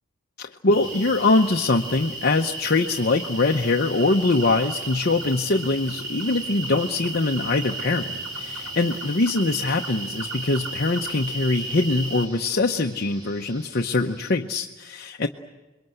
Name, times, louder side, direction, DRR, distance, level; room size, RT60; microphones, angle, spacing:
voice 1, 0.4-15.3, left 3 dB, 50° left, 3 dB, 0.9 m, -23 dB
sound 1, 0.7-12.3, right 2 dB, 85° right, 3.1 m, -34 dB
sound 2, 0.8-14.5, right 1 dB, 20° right, 2.3 m, -46 dB
27.5 x 22.5 x 7.9 m, 1.1 s
head